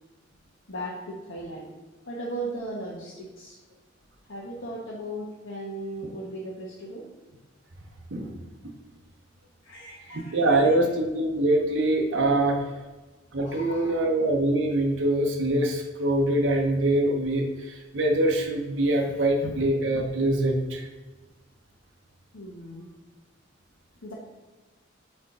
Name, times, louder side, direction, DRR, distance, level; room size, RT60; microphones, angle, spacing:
voice 1, 0.7-1.7 2.0-3.6 4.3-7.1 9.6-10.7 13.4-14.1 22.3-22.9 24.0-24.1, right 1 dB, 80° left, -6 dB, 1.2 m, -37 dB
voice 2, 10.1-12.6 13.3-20.9, right 1 dB, 70° right, 2 dB, 0.9 m, -24 dB
4.6 x 4.4 x 4.8 m, 1.2 s
head